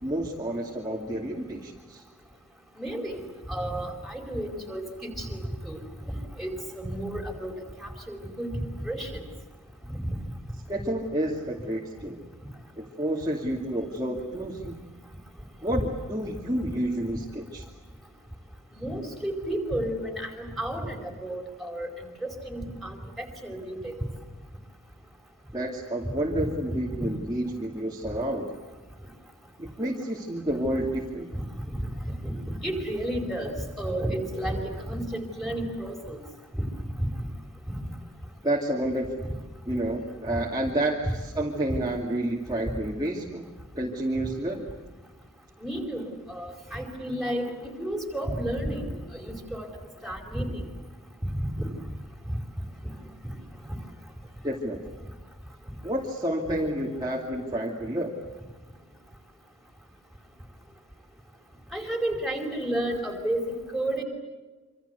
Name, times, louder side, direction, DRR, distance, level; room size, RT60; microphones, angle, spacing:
voice 1, 0.0-2.0 10.7-12.2 12.8-14.8 15.6-17.6 25.5-28.6 29.6-31.4 38.4-39.2 39.7-43.5 43.7-44.7 54.4-54.8 55.8-58.1, right 1 dB, 20° right, -2 dB, 2.5 m, -30 dB
voice 2, 2.8-5.8 6.4-7.5 7.8-9.2 9.9-10.2 18.7-21.9 22.2-23.9 26.4-26.5 31.7-31.9 32.2-33.5 33.8-36.2 36.5-36.6 37.0-37.1 37.7-37.8 41.7-41.8 45.6-47.5 47.8-49.7 50.0-50.6 51.3-51.7 53.6-53.7 61.7-63.4 63.7-64.0, right 1 dB, ahead, 2 dB, 5.0 m, -32 dB
27.0 x 26.5 x 8.2 m, 1.3 s
head